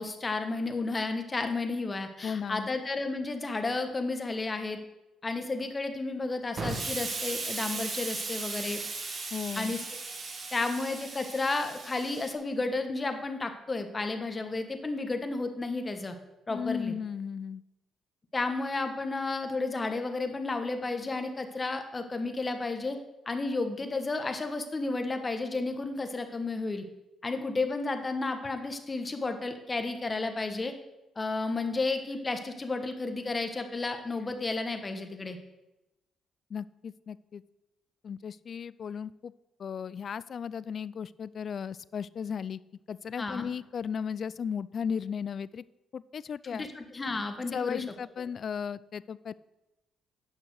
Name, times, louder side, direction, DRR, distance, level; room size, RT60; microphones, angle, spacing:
voice 1, 0.0-4.8 5.2-8.8 9.6-9.8 10.5-16.1 16.5-16.9 18.3-23.0 23.3-26.8 27.2-30.7 31.2-35.4 43.2-43.5 46.5-47.8, left 3 dB, 25° left, 6 dB, 1.2 m, -32 dB
voice 2, 2.2-2.7 9.3-9.7 16.5-17.6 36.5-37.4 38.0-39.3 39.6-42.6 42.9-45.6 45.9-46.7 47.5-49.3, left 7 dB, 50° left, 19 dB, 0.3 m, -35 dB
Explosion, 6.6-12.3, right 3 dB, 45° right, 1.6 m, -37 dB
9.3 x 5.9 x 6.4 m, 0.96 s
cardioid pair, 90°, 0 cm